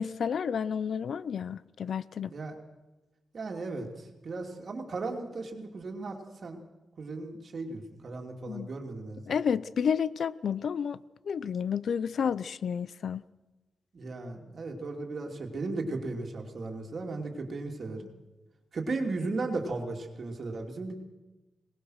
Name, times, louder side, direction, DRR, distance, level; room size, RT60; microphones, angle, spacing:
voice 1, 0.0-2.3 8.5-8.7 9.3-11.0 11.3-13.2, left 7 dB, 65° left, 0.6 m, -30 dB
voice 2, 3.3-6.6 7.0-9.4 13.9-18.1 18.7-21.0, right 3 dB, 50° right, 2.7 m, -36 dB
22.0 x 19.0 x 6.5 m
wide cardioid pair, 125°, 0 cm